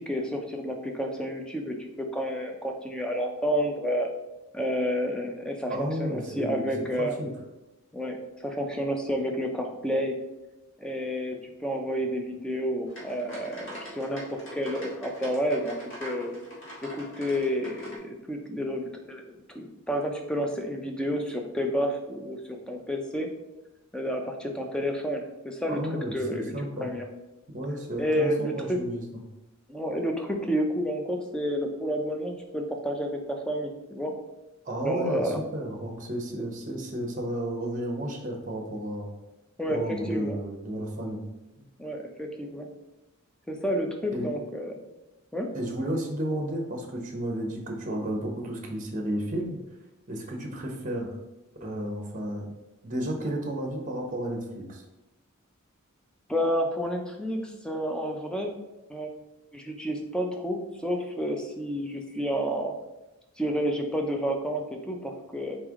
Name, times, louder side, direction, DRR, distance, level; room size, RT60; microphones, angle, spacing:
voice 1, 0.0-4.1 4.5-7.2 7.9-10.1 10.8-16.3 16.8-22.4 22.7-23.3 23.9-25.8 26.1-26.5 26.8-27.1 28.0-28.8 29.7-34.1 34.8-35.4 39.6-40.4 41.8-42.7 43.5-44.8 45.3-45.5 56.3-58.5 58.9-59.1 59.5-62.7 63.4-65.5, equal, 5° left, 2 dB, 0.5 m, -30 dB
voice 2, 5.7-6.7 7.0-7.3 25.7-26.9 27.5-29.0 34.6-39.1 39.7-41.2 44.1-44.3 45.5-49.6 50.1-51.2 51.6-52.5 52.8-54.8, right 1 dB, 35° right, 2 dB, 0.8 m, -32 dB
sound 1, 12.9-18.0, equal, 60° left, 1.5 m, -43 dB
4.2 x 3.3 x 3.6 m, 0.99 s
head